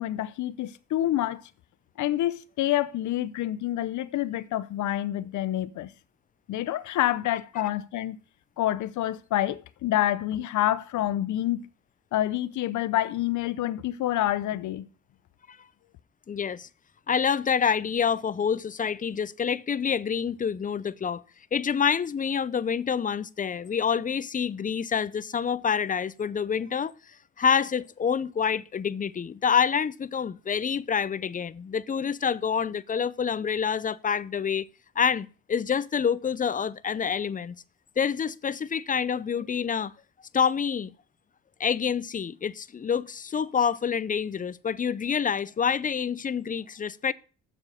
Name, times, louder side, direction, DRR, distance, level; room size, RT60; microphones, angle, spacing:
voice 1, 0.0-1.5 2.0-5.9 6.5-8.2 8.6-11.7 12.1-14.9, left 13 dB, 75° left, 0.8 m, -27 dB
voice 2, 16.3-16.7 17.1-21.2 21.5-26.9 27.4-34.7 35.0-37.6 38.0-39.9 40.3-40.9 41.6-47.1, left 7 dB, 25° left, 0.5 m, -27 dB
7.4 x 6.3 x 6.4 m
cardioid pair, 90°, 30 cm